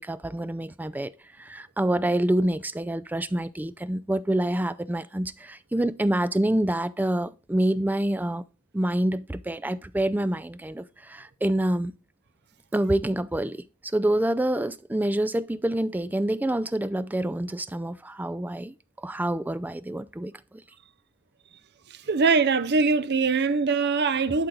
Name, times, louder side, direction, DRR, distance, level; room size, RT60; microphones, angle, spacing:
voice 1, 0.0-8.4 8.7-11.9 12.7-20.6, right 1 dB, 10° right, 0.3 m, -27 dB
voice 2, 21.9-24.5, right 4 dB, 50° right, 0.6 m, -22 dB
11.5 x 4.5 x 3.9 m
head